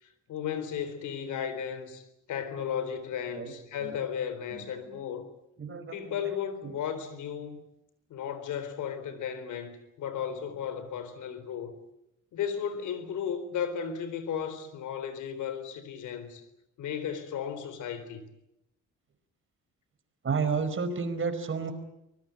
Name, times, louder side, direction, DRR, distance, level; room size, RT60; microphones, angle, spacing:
voice 1, 0.0-5.3 5.9-7.6 8.1-11.7 12.3-16.4 16.8-18.2, left 8 dB, 80° left, 3.9 m, -35 dB
voice 2, 5.6-6.2 6.6-6.8 20.2-21.7, right 5 dB, 40° right, 4.7 m, -31 dB
24.5 x 20.0 x 9.0 m
cardioid pair, 90°, 30 cm